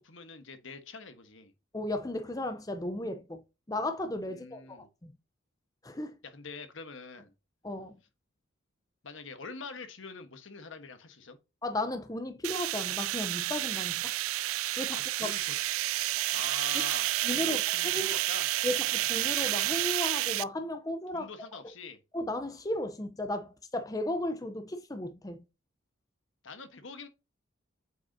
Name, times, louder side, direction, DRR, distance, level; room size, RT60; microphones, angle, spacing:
voice 1, 0.0-1.5 4.3-4.9 6.2-7.3 9.0-11.4 14.9-15.5 16.3-18.5 21.1-22.0 26.4-27.1, left 4 dB, 70° left, 1.3 m, -45 dB
voice 2, 1.7-3.4 3.7-5.1 5.8-6.2 7.6-7.9 11.6-14.1 14.8-15.3 17.2-17.6 17.9-18.0 18.6-21.3 22.1-25.4, left 1 dB, 15° left, 0.6 m, -35 dB
sound 1, 12.4-20.4, right 16 dB, 85° right, 0.4 m, -30 dB
7.9 x 5.2 x 2.7 m
head